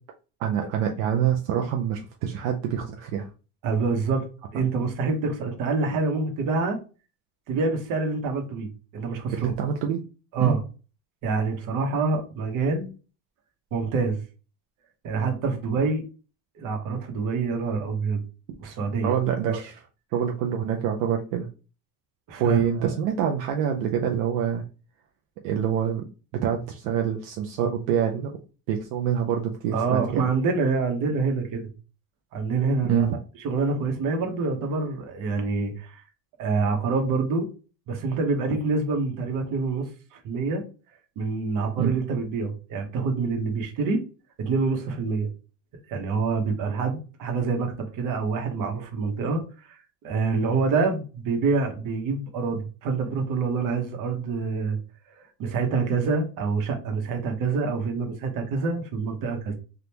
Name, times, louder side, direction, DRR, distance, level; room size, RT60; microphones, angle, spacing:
voice 1, 0.4-3.3 9.3-10.0 10.4-10.6 19.0-19.8 20.1-21.5 22.4-24.6 25.4-26.0 26.3-28.3 28.7-30.3 32.9-33.1 41.8-41.9, right 8 dB, 75° right, 0.6 m, -26 dB
voice 2, 3.6-6.8 7.5-9.5 10.3-10.6 11.2-12.9 13.7-14.2 15.0-16.0 16.6-18.2 18.6-19.2 19.5-19.6 22.3-22.9 29.7-31.7 32.3-33.1 33.4-36.0 36.4-37.5 37.9-40.6 41.2-44.0 44.4-45.3 45.9-49.4 49.7-49.8 50.0-54.8 55.2-59.5, right 4 dB, 55° right, 1.0 m, -26 dB
3.5 x 2.4 x 2.8 m
supercardioid pair, 120°, 39 cm